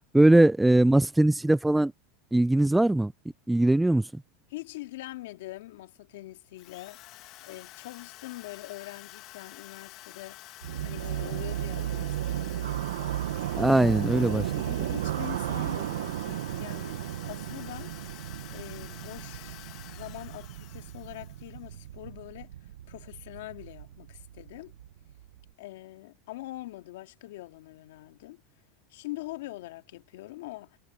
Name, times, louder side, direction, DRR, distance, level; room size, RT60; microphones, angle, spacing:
voice 1, 0.1-1.9 2.3-3.1 3.5-4.0 13.5-14.5, right 1 dB, 5° right, 0.4 m, -21 dB
voice 2, 4.5-7.0 7.4-10.4 10.8-13.7 14.4-18.0 18.5-22.5 22.9-24.7 25.6-28.4 28.9-30.8, left 17 dB, 80° left, 2.2 m, -43 dB
Drill, 6.6-21.8, left 17 dB, 50° left, 1.8 m, -49 dB
sound 1, 10.6-25.5, right 12 dB, 90° right, 1.0 m, -34 dB
supercardioid pair, 125°, 0 cm